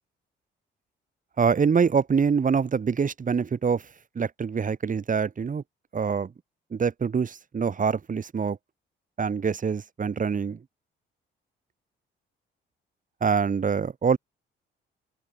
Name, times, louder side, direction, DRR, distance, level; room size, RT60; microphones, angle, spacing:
voice 1, 1.4-3.9 4.2-5.6 5.9-6.3 6.7-8.6 9.2-10.6 13.2-14.2, right 6 dB, 40° right, 7.0 m, -25 dB
cardioid pair, 90°, 20 cm